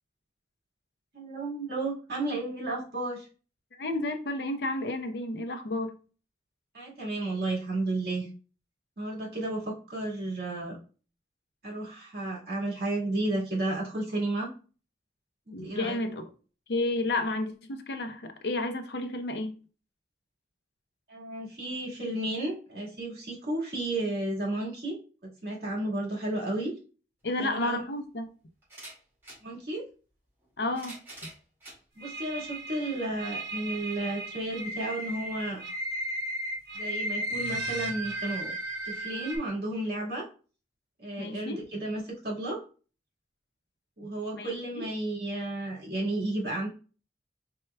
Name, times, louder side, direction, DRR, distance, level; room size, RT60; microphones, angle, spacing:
voice 1, 1.1-3.3 6.7-8.3 9.0-10.8 11.6-14.5 15.5-16.0 21.1-25.0 25.2-26.7 27.4-27.8 29.4-29.9 32.0-35.6 36.7-38.5 38.8-40.3 41.0-42.6 44.0-46.7, right 2 dB, 60° right, 1.8 m, -32 dB
voice 2, 3.8-5.9 15.5-16.2 16.7-19.5 27.2-28.3 30.6-31.0 41.2-41.6 44.3-44.5 44.8-44.9, left 2 dB, 70° left, 0.7 m, -31 dB
sound 1, 27.2-27.3 28.6-29.4 30.4-31.8 32.5-32.6 33.9-34.0, right 1 dB, 15° right, 2.2 m, -46 dB
sound 2, 32.0-39.4, right 1 dB, 85° right, 1.1 m, -35 dB
4.5 x 4.4 x 2.3 m
head